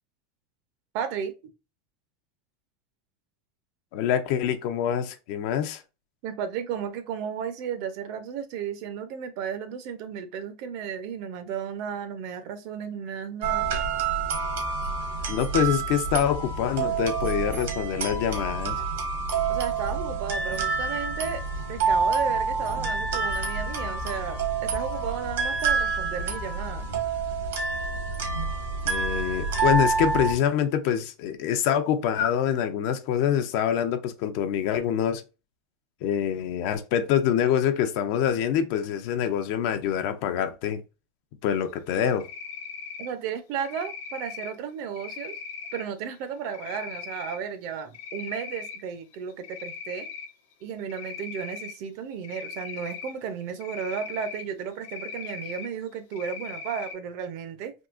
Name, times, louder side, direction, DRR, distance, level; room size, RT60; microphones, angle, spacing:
voice 1, 0.9-1.3 6.2-13.7 19.5-21.4 21.7-26.9 43.0-45.4 45.7-50.1 50.6-57.7, right 7 dB, 45° right, 0.6 m, -34 dB
voice 2, 3.9-5.8 15.3-18.8 28.8-35.2 36.0-40.8 41.4-42.3, left 9 dB, 50° left, 0.5 m, -25 dB
sound 1, 13.4-30.3, right 4 dB, 85° right, 1.3 m, -28 dB
Cricket, 42.2-43.1 43.6-44.5 45.0-45.8 46.5-47.4 47.8-48.8 49.1-50.3 50.9-51.7 52.2-53.1 53.6-54.4 54.8-55.7 56.1-56.9, left 6 dB, 75° left, 0.8 m, -39 dB
3.6 x 2.8 x 2.4 m
supercardioid pair, 165°, 0 cm